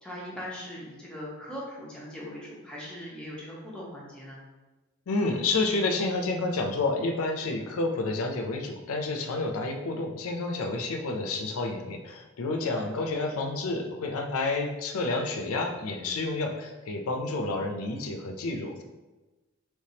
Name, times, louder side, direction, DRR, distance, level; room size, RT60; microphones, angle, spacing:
voice 1, 0.0-4.4 12.8-12.9, equal, 5° left, -6 dB, 0.8 m, -40 dB
voice 2, 5.1-18.8, left 3 dB, 75° left, 3 dB, 0.5 m, -29 dB
3.4 x 3.1 x 2.8 m, 1.2 s
head